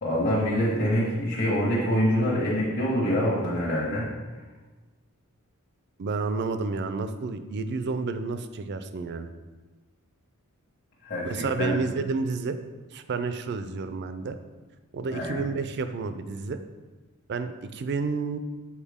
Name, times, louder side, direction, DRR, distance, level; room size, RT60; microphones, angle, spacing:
voice 1, 0.0-4.1 11.0-11.7 15.1-15.4, equal, 45° left, -8 dB, 1.3 m, -25 dB
voice 2, 6.0-9.3 11.2-12.6 12.9-14.4 14.9-16.6 17.3-18.4, right 4 dB, 50° right, 10 dB, 0.4 m, -30 dB
7.2 x 4.2 x 3.5 m, 1.3 s
head